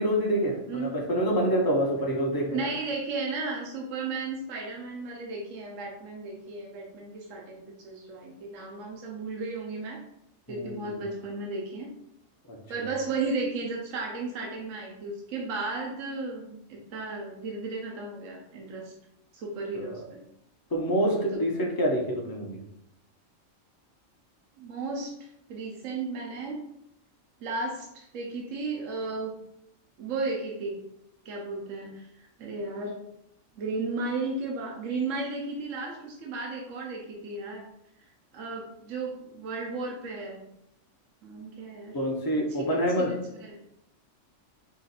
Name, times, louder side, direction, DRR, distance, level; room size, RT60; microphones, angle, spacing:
voice 1, 0.0-2.7 10.5-11.0 12.5-12.9 19.7-20.0 20.7-22.6 41.9-43.1, equal, 20° left, -1 dB, 0.7 m, -27 dB
voice 2, 2.5-10.0 10.5-11.9 12.7-18.9 19.3-20.2 21.3-21.4 24.6-26.6 27.4-29.4 30.0-30.8 31.2-33.0 33.6-37.7 38.3-40.4 41.2-42.0 42.6-43.1 43.4-43.6, right 3 dB, 70° right, -1 dB, 1.1 m, -34 dB
4.8 x 2.5 x 4.1 m, 0.77 s
omnidirectional pair, 1.4 m